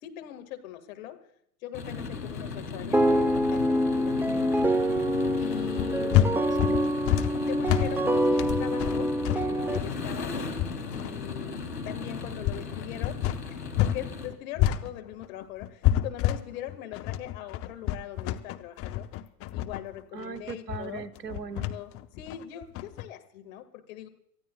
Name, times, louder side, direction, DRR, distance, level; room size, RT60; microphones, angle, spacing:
voice 1, 0.0-1.2 1.6-4.5 5.4-6.2 7.4-10.3 10.9-19.1 19.5-21.1 21.6-24.1, left 12 dB, 55° left, 7 dB, 2.0 m, -41 dB
sound 1, 1.7-14.3, left 4 dB, 80° left, 2.7 m, -37 dB
sound 2, 2.9-9.8, equal, 5° right, 0.8 m, -26 dB
voice 2, 5.5-6.8 20.1-21.7, right 6 dB, 90° right, 12 dB, 1.0 m, -39 dB
sound 3, 5.7-14.0 14.3-23.0, left 12 dB, 30° left, 0.8 m, -28 dB
28.0 x 14.5 x 2.3 m, 0.67 s
figure-of-eight pair, 95°, 47 cm